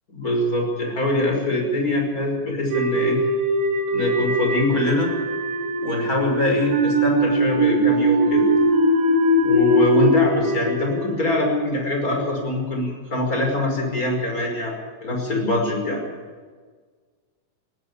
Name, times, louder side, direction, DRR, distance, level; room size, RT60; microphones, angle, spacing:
voice 1, 0.1-3.2 3.9-5.1 5.8-8.4 9.4-14.7 15.0-16.0, left 1 dB, 20° left, 1 dB, 5.5 m, -23 dB
sound 1, 2.7-11.9, equal, 85° right, 5.1 m, -21 dB
20.5 x 15.5 x 8.8 m, 1.5 s
omnidirectional pair, 5.1 m